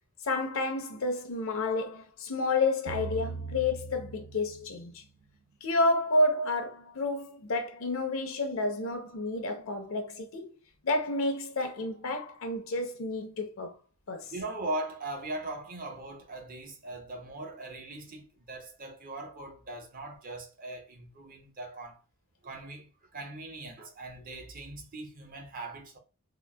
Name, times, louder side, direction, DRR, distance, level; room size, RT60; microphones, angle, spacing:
voice 1, 0.2-5.0 5.6-10.5 10.8-13.7 14.1-14.3, left 2 dB, 65° left, 0.6 m, -30 dB
sound 1, 2.9-5.1, right 4 dB, 85° right, 0.6 m, -40 dB
voice 2, 14.3-22.0 22.4-26.0, right 2 dB, 40° right, 0.6 m, -40 dB
3.7 x 2.0 x 2.2 m
head